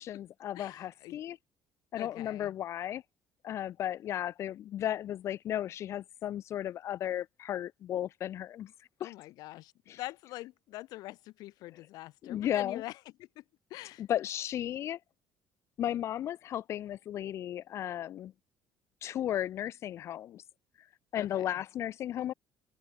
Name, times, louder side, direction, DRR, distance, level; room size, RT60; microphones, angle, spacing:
voice 1, 0.0-1.4 1.9-3.0 3.4-8.7 9.0-9.1 9.9-10.0 12.2-12.8 14.0-15.0 15.8-18.3 19.0-20.4 21.1-22.3, left 11 dB, 45° left, 0.7 m, -35 dB
voice 2, 0.5-1.2 2.0-2.5 9.0-13.4 13.7-14.0 21.2-21.6, left 17 dB, 70° left, 6.7 m, -45 dB
cardioid pair, 170°, 7 cm